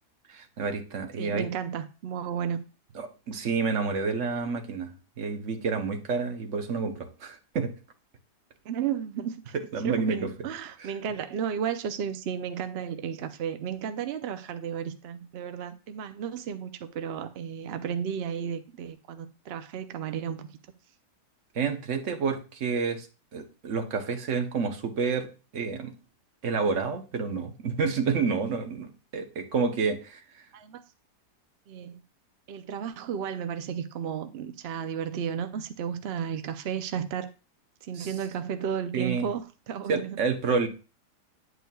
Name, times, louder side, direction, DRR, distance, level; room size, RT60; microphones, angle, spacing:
voice 1, 0.3-1.5 2.9-4.9 5.2-7.7 9.7-10.2 21.5-23.1 23.3-25.9 26.4-30.2 38.0-38.1 38.9-39.3 39.9-40.7, right 5 dB, 50° right, 5 dB, 1.2 m, -29 dB
voice 2, 1.2-2.6 8.6-9.6 9.8-20.6 30.5-30.8 31.7-32.0 32.5-37.3 37.8-40.2, right 8 dB, 70° right, 9 dB, 0.5 m, -33 dB
9.1 x 8.3 x 2.3 m, 0.33 s
omnidirectional pair, 1.8 m